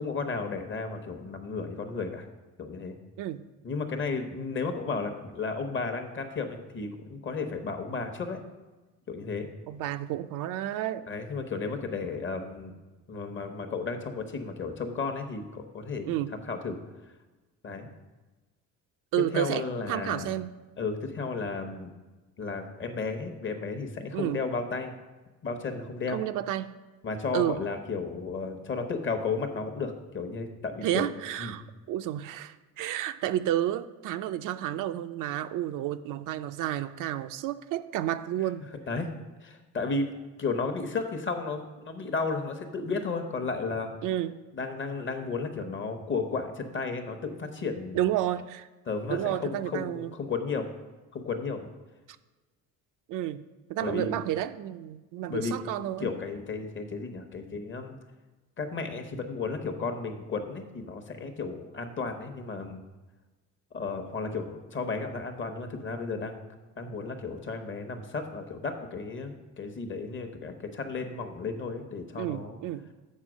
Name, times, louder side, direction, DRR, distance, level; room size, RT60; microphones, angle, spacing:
voice 1, 0.0-2.3 2.6-3.0 3.6-8.4 9.1-9.5 11.1-12.7 13.1-16.8 17.6-17.9 19.3-20.3 20.8-21.9 22.4-24.9 25.4-26.2 27.0-31.1 31.4-31.5 38.9-40.1 40.4-43.9 44.5-48.0 48.9-50.7 51.1-51.7 53.8-54.2 55.3-55.6 56.0-58.0 58.6-62.8 63.7-66.4 66.8-72.6, left 4 dB, 35° left, 7 dB, 0.9 m, -33 dB
voice 2, 9.7-11.1 16.1-16.3 19.1-20.5 24.1-24.4 26.1-26.7 27.3-27.6 30.8-31.6 31.9-38.7 44.0-44.4 47.9-48.7 49.1-50.1 53.1-53.4 53.7-56.1 72.2-72.9, right 12 dB, 65° right, 11 dB, 0.5 m, -31 dB
7.4 x 4.3 x 6.2 m, 1.2 s
cardioid pair, 110°, 34 cm